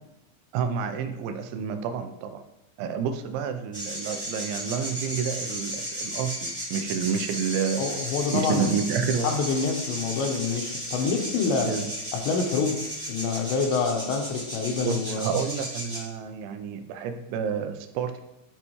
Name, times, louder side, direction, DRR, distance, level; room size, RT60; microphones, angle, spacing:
voice 1, 0.5-2.4 2.8-7.8 8.3-9.3 11.6-11.9 14.8-18.2, right 7 dB, 80° right, 7 dB, 2.8 m, -29 dB
sound 1, 3.7-16.0, equal, 5° left, 0.4 m, -34 dB
voice 2, 7.8-11.8 12.1-12.8 13.1-15.4, left 5 dB, 75° left, 3 dB, 3.0 m, -27 dB
13.5 x 5.7 x 3.1 m, 0.93 s
omnidirectional pair, 5.7 m